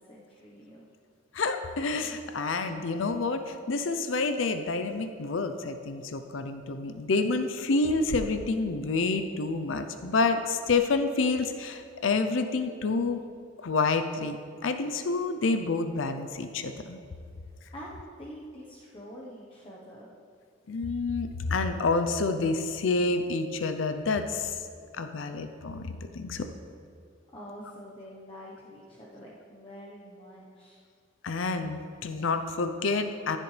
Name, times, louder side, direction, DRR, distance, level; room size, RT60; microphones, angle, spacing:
voice 1, 0.1-0.8 17.7-20.1 27.3-30.8, equal, 30° left, -4 dB, 1.0 m, -46 dB
voice 2, 1.3-13.2 13.6-14.4 14.6-17.0 20.7-24.6 24.9-26.4 31.2-33.4, left 3 dB, 85° left, 8 dB, 0.6 m, -28 dB
15.5 x 7.5 x 3.3 m, 2.4 s
head